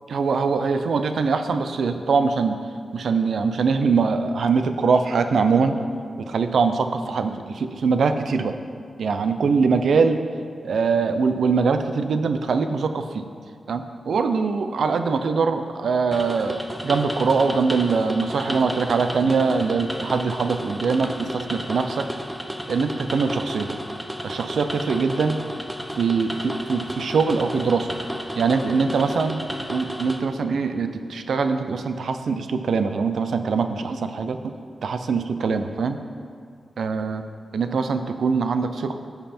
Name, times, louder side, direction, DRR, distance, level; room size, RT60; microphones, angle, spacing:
voice 1, 0.1-2.6 2.9-5.8 6.3-8.5 9.0-10.2 10.6-13.3 13.7-22.1 22.7-23.8 24.2-25.4 26.0-27.9 28.4-29.4 29.7-34.5 34.8-36.0 36.8-37.2 37.5-38.9, right 5 dB, 80° right, 8 dB, 0.6 m, -22 dB
sound 1, 16.1-30.2, equal, 10° right, 0.8 m, -33 dB
14.5 x 5.6 x 4.3 m, 2.2 s
wide cardioid pair, 85°, 0 cm